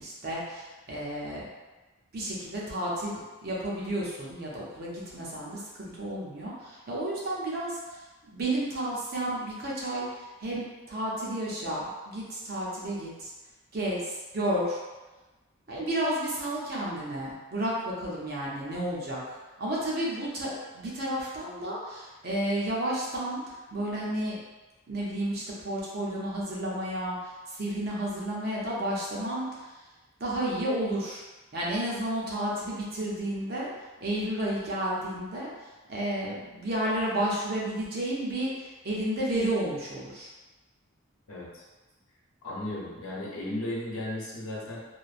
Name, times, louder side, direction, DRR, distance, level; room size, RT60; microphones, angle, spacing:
voice 1, 0.0-1.4 2.1-8.0 8.3-13.3 13.7-14.8 15.7-19.2 19.6-24.4 24.9-29.7 30.2-31.2 31.5-33.7 34.0-35.5 35.9-40.3, right 1 dB, 45° right, -5 dB, 0.6 m, -32 dB
voice 2, 41.3-41.6 42.4-44.8, left 1 dB, 90° left, -5 dB, 0.8 m, -35 dB
3.0 x 2.0 x 2.4 m, 1.2 s
head